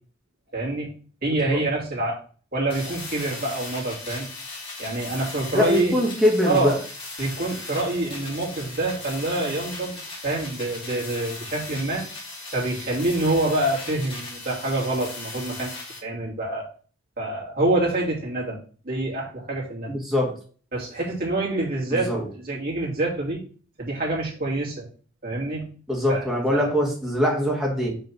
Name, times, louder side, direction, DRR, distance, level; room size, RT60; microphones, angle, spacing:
voice 1, 0.5-0.9 1.2-2.2 2.5-4.3 4.8-6.0 6.4-6.8 7.2-12.0 12.5-16.7 17.2-18.6 18.8-19.9 20.7-22.2 22.4-23.4 23.8-24.9 25.2-25.7 26.1-26.7, right 2 dB, 50° right, -4 dB, 2.9 m, -26 dB
sound 1, 2.7-16.0, left 2 dB, 30° left, 2.4 m, -38 dB
voice 2, 5.5-6.8 19.9-20.3 21.9-22.3 25.9-27.9, left 1 dB, 5° right, -3 dB, 2.2 m, -23 dB
5.6 x 4.2 x 6.1 m, 0.41 s
head